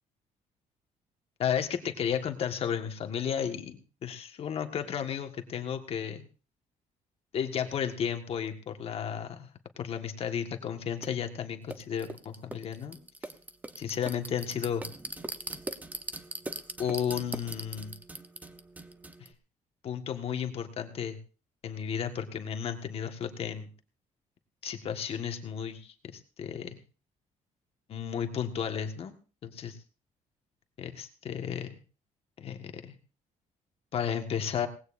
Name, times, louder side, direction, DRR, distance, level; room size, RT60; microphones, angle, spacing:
voice 1, 1.4-6.2 7.3-9.5 9.8-13.0 13.8-14.8 16.8-17.9 19.2-19.3 19.8-21.2 21.6-23.7 24.6-26.8 27.9-29.1 29.4-29.8 30.8-31.8 32.4-32.9 33.9-34.7, left 8 dB, 45° left, 6 dB, 1.6 m, -33 dB
sound 1, 11.0-11.1 11.7-19.3, right 2 dB, 10° right, 0.9 m, -40 dB
19.0 x 16.0 x 2.6 m, 0.37 s
cardioid pair, 150°, 13 cm